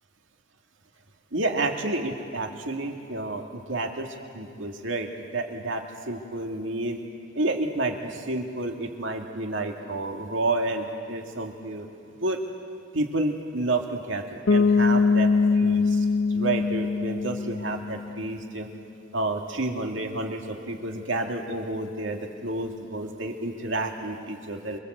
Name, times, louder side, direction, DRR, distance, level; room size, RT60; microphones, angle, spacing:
voice 1, 1.3-7.0 7.4-11.9 12.2-12.4 12.9-18.7 19.1-24.8, right 2 dB, 70° right, 2 dB, 2.3 m, -30 dB
Bass guitar, 14.5-18.2, left 4 dB, 70° left, 0.7 m, -22 dB
27.5 x 23.5 x 8.1 m, 2.5 s
head